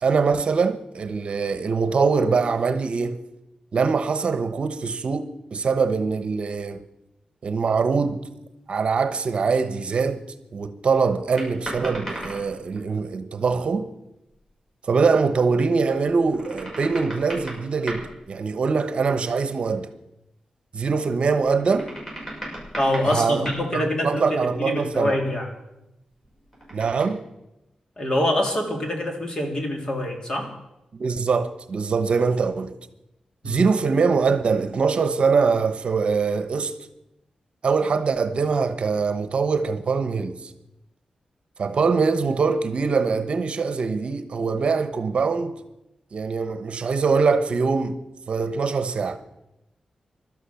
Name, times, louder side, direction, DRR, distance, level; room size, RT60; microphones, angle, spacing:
voice 1, 0.0-3.2 3.7-6.8 7.4-8.2 8.7-10.2 10.5-13.9 14.8-19.9 20.7-21.9 23.1-25.1 26.7-27.2 30.9-32.7 33.4-36.7 37.6-40.5 41.6-45.5 46.1-47.9 48.3-49.2, right 5 dB, 55° right, 1.1 m, -23 dB
sound 1, 11.4-12.9 14.3-14.5 15.9-18.3 21.0-23.7 26.2-27.0, right 1 dB, 15° left, 6.9 m, -37 dB
voice 2, 22.7-25.5 28.0-30.5 33.4-33.6, left 1 dB, 35° left, 3.3 m, -25 dB
16.5 x 12.0 x 7.1 m
wide cardioid pair, 125°, 2 cm